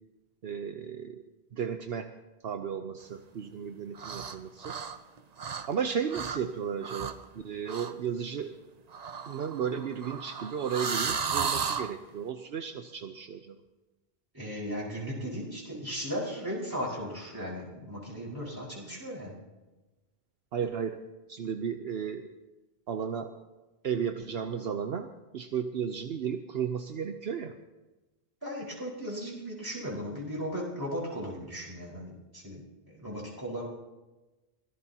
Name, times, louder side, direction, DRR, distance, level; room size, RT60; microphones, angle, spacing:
voice 1, 0.4-1.2 1.5-2.1 2.4-4.8 5.7-8.5 9.3-13.6 20.5-21.0 21.3-22.3 22.9-23.3 23.8-27.6, right 7 dB, 70° right, 6 dB, 1.0 m, -34 dB
sound 1, 4.0-4.4 4.6-5.8 6.1-6.4 6.8-7.2 7.7-7.9 8.9-11.9, right 6 dB, 45° right, 0.7 m, -34 dB
voice 2, 14.3-19.4 28.4-32.6 32.9-33.7, equal, 20° right, -5 dB, 4.9 m, -36 dB
24.0 x 17.0 x 2.9 m, 1.1 s
omnidirectional pair, 1.1 m